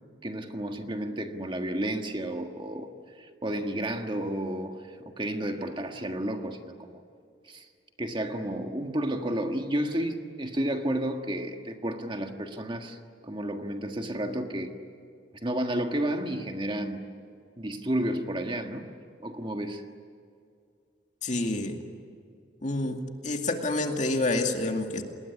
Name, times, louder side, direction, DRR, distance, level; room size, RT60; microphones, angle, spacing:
voice 1, 0.2-7.0 7.4-7.7 8.0-13.0 13.2-14.8 15.4-17.1 17.6-18.9 19.2-19.8, right 1 dB, 25° right, 5 dB, 1.6 m, -31 dB
voice 2, 21.2-21.8 22.6-23.0 23.2-25.0, left 2 dB, 40° left, 4 dB, 2.4 m, -28 dB
28.5 x 20.5 x 9.8 m, 2.3 s
head